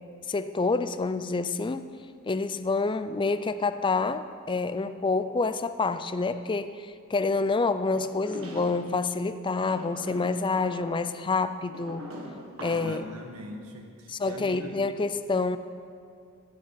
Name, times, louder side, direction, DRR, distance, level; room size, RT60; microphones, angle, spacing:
voice 1, 0.3-1.9 2.3-12.1 12.6-13.1 14.1-15.6, left 3 dB, 20° left, 12 dB, 0.4 m, -28 dB
sound 1, 7.9-8.9 9.6-13.0, equal, 65° right, 1.9 m, -42 dB
voice 2, 12.6-14.7, equal, 85° right, 3 dB, 1.6 m, -41 dB
15.5 x 7.4 x 6.2 m, 2.3 s
head